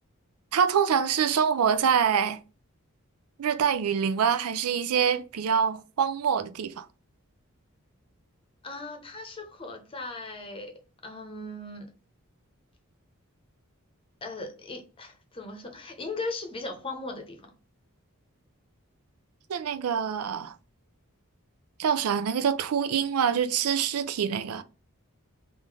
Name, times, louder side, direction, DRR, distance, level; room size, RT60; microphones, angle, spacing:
voice 1, 0.5-2.4 3.4-6.9 19.5-20.5 21.8-24.6, right 7 dB, 85° right, 0.4 m, -25 dB
voice 2, 8.6-10.7 11.0-11.9 14.2-17.5, left 2 dB, 25° left, 0.8 m, -38 dB
3.7 x 2.6 x 4.7 m
head